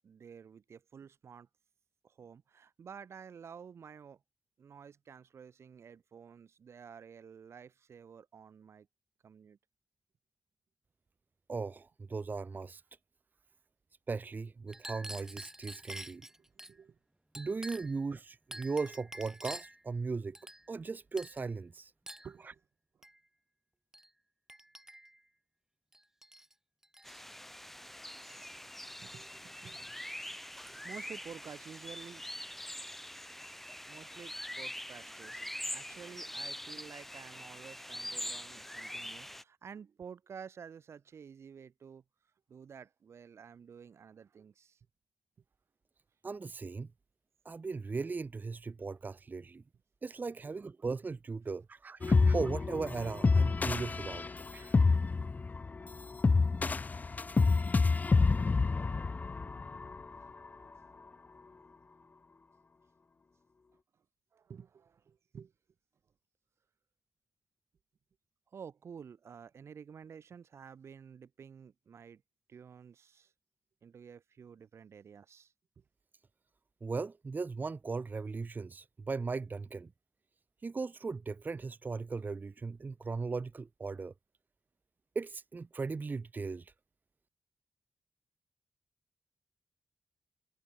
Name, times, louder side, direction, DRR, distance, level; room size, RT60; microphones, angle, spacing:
voice 1, 0.0-1.5 2.0-4.2 4.6-8.9 9.2-9.6 16.6-17.0 22.2-22.6 28.5-28.6 29.0-29.9 30.6-32.2 33.9-42.0 42.5-44.8 64.3-65.5 68.5-72.2 72.5-73.3 73.8-75.5, right 7 dB, 75° right, 1.8 m, -51 dB
voice 2, 11.5-12.8 14.1-16.3 17.3-20.4 20.7-21.9 22.4-22.5 46.2-46.9 47.4-49.6 50.0-54.8 76.8-79.9 80.6-84.1 85.1-86.7, right 4 dB, 40° right, 1.0 m, -38 dB
Chink clink, 14.7-16.7 17.3-18.0 18.5-19.8 20.3-20.9 21.2-21.5 22.1-22.3 23.0-23.2 23.9-24.1 24.5-25.2 25.9-26.5 26.8-27.2 28.2-28.9 29.7-29.8 30.1-31.0, right 1 dB, 10° right, 4.5 m, -48 dB
sound 1, 27.0-39.4, equal, 5° left, 2.8 m, -44 dB
sound 2, 52.0-60.2, left 4 dB, 35° left, 0.5 m, -28 dB
wide cardioid pair, 90°, 5 cm